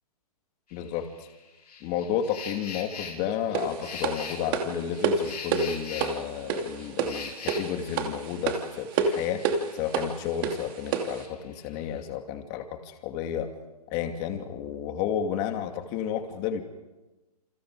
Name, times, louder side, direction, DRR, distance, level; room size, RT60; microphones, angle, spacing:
sound 1, 0.7-10.2 10.5-12.0, left 5 dB, 85° left, 5.7 m, -43 dB
voice 1, 0.7-1.0 1.8-9.4 9.7-13.5 13.9-16.6, left 9 dB, 30° left, 5 dB, 2.6 m, -32 dB
sound 2, 3.5-11.2, right 5 dB, 35° right, 2.7 m, -29 dB
29.0 x 28.0 x 5.0 m, 1.1 s
hypercardioid pair, 155°, 20 cm